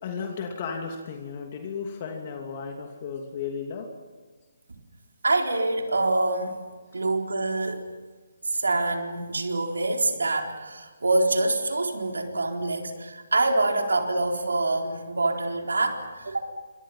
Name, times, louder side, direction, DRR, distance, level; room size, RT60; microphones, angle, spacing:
voice 1, 0.0-3.9, left 6 dB, 40° left, 2 dB, 2.8 m, -34 dB
voice 2, 5.2-6.6 6.9-7.9 8.4-16.4, right 2 dB, 80° right, 3 dB, 3.9 m, -25 dB
28.5 x 25.0 x 5.8 m, 1.4 s
figure-of-eight pair, 145°, 0 cm